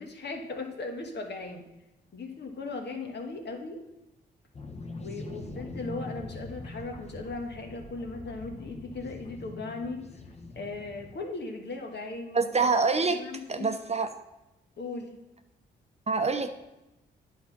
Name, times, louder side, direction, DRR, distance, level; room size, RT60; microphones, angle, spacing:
voice 1, 0.0-1.6 2.1-3.8 4.9-10.1 10.5-12.4 13.0-13.7 14.8-15.2, left 3 dB, 55° left, 3 dB, 1.5 m, -38 dB
sound 1, 4.5-11.1, left 2 dB, 30° left, 1.2 m, -43 dB
voice 2, 12.3-14.1 16.1-16.5, right 4 dB, 30° right, 8 dB, 0.8 m, -26 dB
9.3 x 4.1 x 6.1 m, 0.94 s
hypercardioid pair, 45°, 21 cm